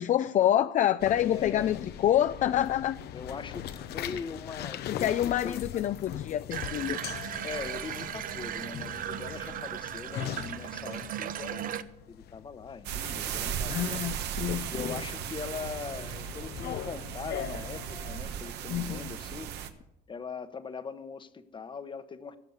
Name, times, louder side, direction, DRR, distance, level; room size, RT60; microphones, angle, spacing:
voice 1, 0.0-3.0 4.9-7.0 13.7-15.0 18.7-19.1, left 11 dB, 45° left, 0.4 m, -27 dB
sound 1, 1.0-18.2, left 11 dB, 70° left, 0.8 m, -41 dB
voice 2, 1.3-1.7 3.1-5.6 7.4-14.1 14.7-19.5 20.1-22.4, left 5 dB, 30° left, 1.0 m, -41 dB
Water tap faucet / Bathtub (filling or washing), 6.5-11.8, right 10 dB, 55° right, 0.8 m, -37 dB
sound 2, 12.8-19.7, right 9 dB, 80° right, 1.3 m, -36 dB
16.5 x 7.0 x 8.0 m
cardioid pair, 110°, 17 cm